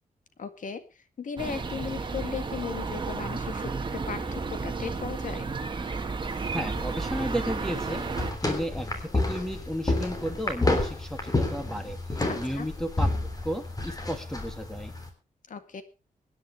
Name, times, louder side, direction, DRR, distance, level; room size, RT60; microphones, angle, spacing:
voice 1, 0.4-5.5 12.3-12.7 15.5-15.8, left 6 dB, 60° left, 10 dB, 2.0 m, -37 dB
sound 1, 1.4-8.3, right 4 dB, 35° right, 1.8 m, -32 dB
sound 2, 6.2-15.1, left 2 dB, 25° left, 3.3 m, -30 dB
voice 2, 6.5-8.1 8.4-12.0 12.3-13.1 13.4-14.9, equal, 5° left, 7 dB, 2.5 m, -33 dB
24.0 x 10.5 x 3.4 m, 0.29 s
wide cardioid pair, 140°, 15 cm